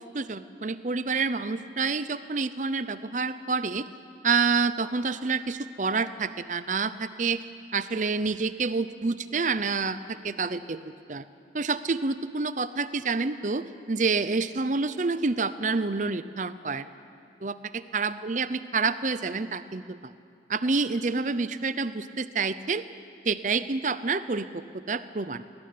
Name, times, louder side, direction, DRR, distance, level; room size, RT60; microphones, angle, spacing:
voice 1, 0.0-3.9 4.2-7.4 7.7-10.8 11.1-11.2 11.5-16.9 17.4-20.1 20.5-22.8 23.2-25.4, right 4 dB, 40° right, 13 dB, 0.6 m, -28 dB
20.0 x 18.5 x 9.5 m, 2.4 s
head